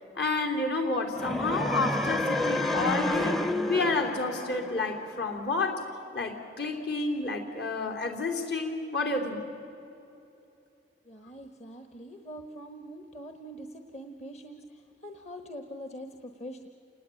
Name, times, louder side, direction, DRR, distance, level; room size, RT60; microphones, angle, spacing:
voice 1, 0.2-3.4 3.7-5.8 6.1-9.5, left 3 dB, 70° left, 3 dB, 3.5 m, -30 dB
sound 1, 1.1-5.3, left 1 dB, ahead, 0.6 m, -30 dB
voice 2, 11.0-16.7, equal, 40° left, 6 dB, 1.2 m, -44 dB
28.0 x 19.5 x 9.1 m, 2.9 s
head